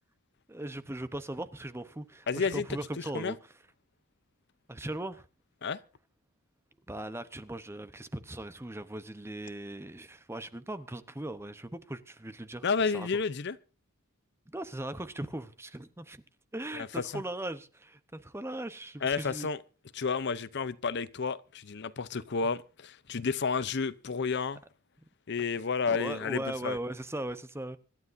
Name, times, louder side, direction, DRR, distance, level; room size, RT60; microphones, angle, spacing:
voice 1, 0.5-3.4 4.7-5.2 6.9-12.6 12.9-13.1 14.5-16.2 16.5-19.5 25.8-27.8, right 1 dB, 10° right, 0.8 m, -39 dB
voice 2, 2.3-2.7 3.0-3.3 5.6-5.8 12.6-13.6 16.7-17.2 19.0-19.6 19.9-24.6 25.3-26.8, left 5 dB, 55° left, 0.6 m, -31 dB
25.5 x 12.5 x 2.6 m
head